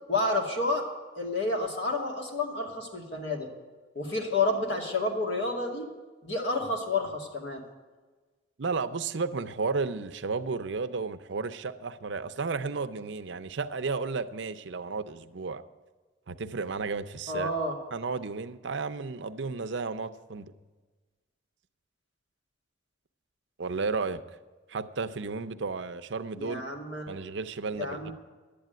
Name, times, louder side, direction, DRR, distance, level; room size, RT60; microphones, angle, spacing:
voice 1, 0.1-0.8 1.1-3.5 3.9-5.9 6.2-7.6 17.3-17.8 26.4-27.1 27.8-28.1, left 2 dB, 65° left, 1 dB, 2.4 m, -30 dB
voice 2, 8.6-15.6 16.3-17.5 17.9-20.5 23.6-24.2 24.7-26.6 27.1-28.1, right 4 dB, 70° right, 10 dB, 0.6 m, -33 dB
11.5 x 8.6 x 9.2 m, 1.3 s
head